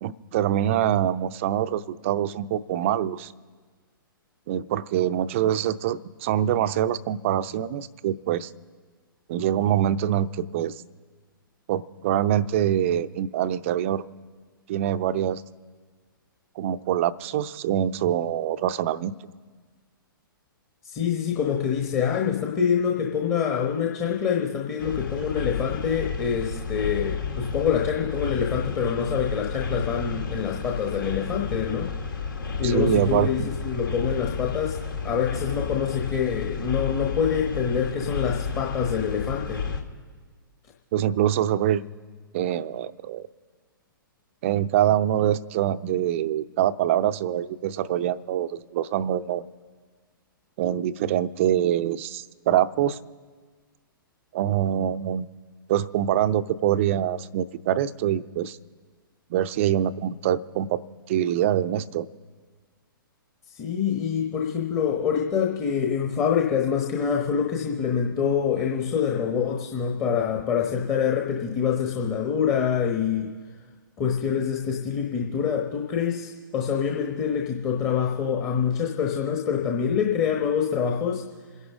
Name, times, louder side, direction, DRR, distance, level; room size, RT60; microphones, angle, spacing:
voice 1, 0.0-3.3 4.5-8.5 9.3-10.8 11.7-14.0 14.7-15.4 16.6-19.1 32.6-33.5 40.9-41.8 42.3-43.2 44.4-49.5 50.6-53.0 54.3-55.3 55.7-58.6 59.3-60.8 61.1-62.1, right 11 dB, 35° right, 13 dB, 0.5 m, -24 dB
voice 2, 20.8-31.9 32.6-34.8 35.0-39.6 63.5-73.3 74.0-81.2, left 7 dB, 20° left, -1 dB, 1.2 m, -25 dB
sound 1, 24.8-39.8, left 5 dB, 70° left, 1.8 m, -32 dB
27.5 x 11.0 x 3.6 m, 1.5 s
figure-of-eight pair, 120°, 12 cm